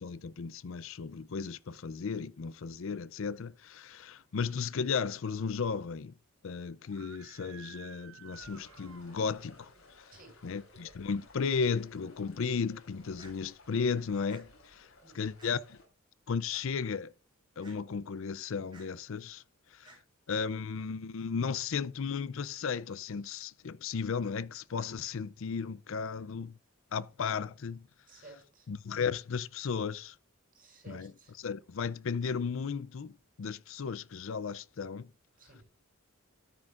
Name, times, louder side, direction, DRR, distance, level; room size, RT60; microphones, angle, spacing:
voice 1, 0.0-6.1 6.4-9.7 10.4-15.8 16.3-17.1 17.6-19.4 19.7-19.9 20.3-26.6 26.9-27.8 28.7-30.2 30.9-31.1 31.4-35.1, left 5 dB, 70° left, 0.5 m, -35 dB
Screaming, 6.8-9.6, right 7 dB, 80° right, 0.9 m, -53 dB
sound 1, 8.3-15.8, left 2 dB, 90° left, 5.8 m, -59 dB
sound 2, 13.2-13.3 14.3-14.4 15.4-15.5 16.5-16.6 17.6-17.8 18.7-18.9 19.8-20.0, right 3 dB, 25° right, 3.9 m, -55 dB
voice 2, 28.1-28.7 30.5-31.4 35.4-35.6, right 3 dB, 40° right, 6.9 m, -55 dB
13.0 x 9.7 x 2.5 m
head